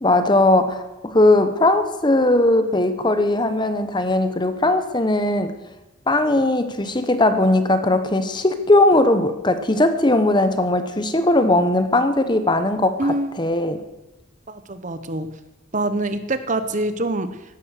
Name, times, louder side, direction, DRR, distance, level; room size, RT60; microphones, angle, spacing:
voice 1, 0.0-5.5 6.1-13.8, left 2 dB, 20° left, 10 dB, 0.9 m, -19 dB
voice 2, 13.0-13.4 14.5-15.3 15.7-17.4, right 2 dB, 35° right, 11 dB, 0.9 m, -25 dB
16.0 x 12.5 x 6.6 m, 1.0 s
head